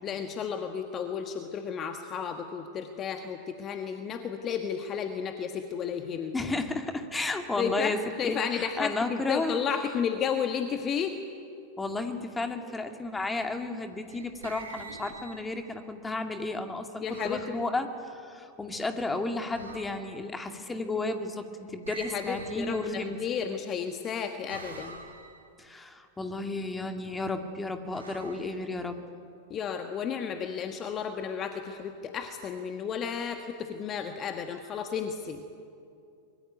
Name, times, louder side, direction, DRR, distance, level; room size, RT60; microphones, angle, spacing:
voice 1, 0.0-6.3 7.6-11.2 17.0-17.6 21.9-25.0 29.5-35.4, left 7 dB, 30° left, 6 dB, 1.5 m, -33 dB
voice 2, 6.3-8.0 8.2-9.6 11.8-23.5 25.6-29.0, left 2 dB, 10° left, 6 dB, 2.3 m, -33 dB
sound 1, 13.8-15.8 17.0-17.5 19.5-20.2 21.8-23.3 24.5-25.5 27.9-29.1, right 4 dB, 75° right, 2.5 m, -46 dB
24.0 x 22.0 x 9.7 m, 2.5 s
figure-of-eight pair, 90°, 0 cm